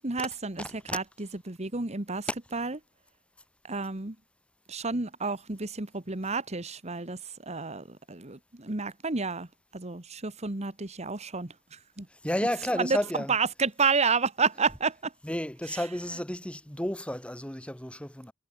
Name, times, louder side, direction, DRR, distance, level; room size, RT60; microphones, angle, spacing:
voice 1, 0.0-0.6 0.9-2.8 3.7-4.1 4.7-7.2 7.5-9.5 9.7-12.1 12.8-13.0 13.3-15.1 15.7-15.8, right 4 dB, 30° right, 1.5 m, -30 dB
voice 2, 0.6-1.0 12.1-13.3 15.2-18.3, left 1 dB, 5° left, 1.5 m, -32 dB
head